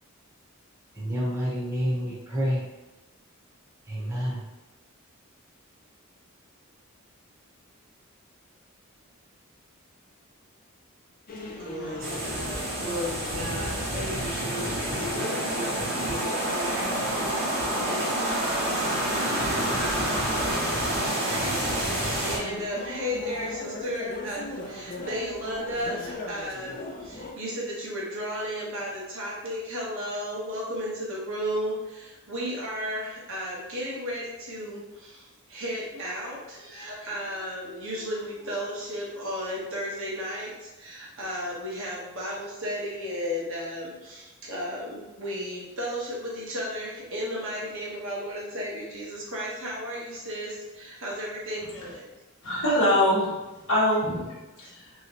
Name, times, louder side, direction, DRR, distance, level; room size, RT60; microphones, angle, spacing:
voice 1, 0.9-2.6 3.9-4.4, equal, 15° right, -7 dB, 0.7 m, -28 dB
sound 1, 11.3-27.3, left 2 dB, 40° left, 0.5 m, -39 dB
voice 2, 11.6-16.9 17.8-18.9 19.8-20.4 20.9-52.1, equal, 65° right, -5 dB, 1.1 m, -34 dB
sound 2, 12.0-22.4, right 1 dB, 45° right, 0.9 m, -28 dB
voice 3, 52.4-53.3 53.7-54.9, left 1 dB, 65° left, -6 dB, 1.0 m, -24 dB
3.0 x 2.9 x 2.9 m, 1.1 s
head